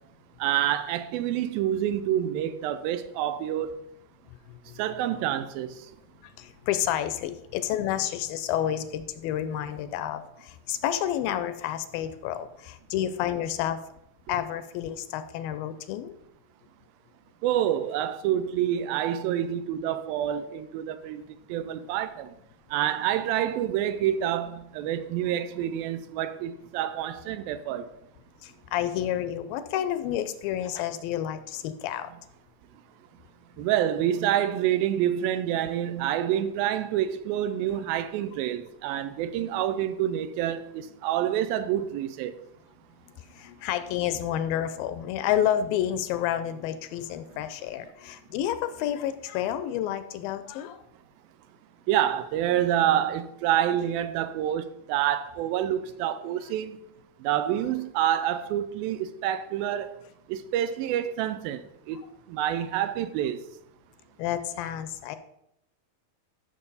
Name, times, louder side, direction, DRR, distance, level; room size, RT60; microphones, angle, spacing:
voice 1, 0.4-3.8 4.8-5.8 14.3-14.4 17.4-21.2 21.5-22.3 22.7-27.9 33.6-42.4 51.9-56.8 57.2-60.0 60.3-63.4, right 11 dB, 85° right, 2.3 m, -27 dB
voice 2, 6.4-13.8 14.3-16.1 28.4-32.1 43.3-50.8 64.2-65.2, left 11 dB, 80° left, 2.3 m, -30 dB
13.0 x 6.1 x 4.0 m
omnidirectional pair, 4.3 m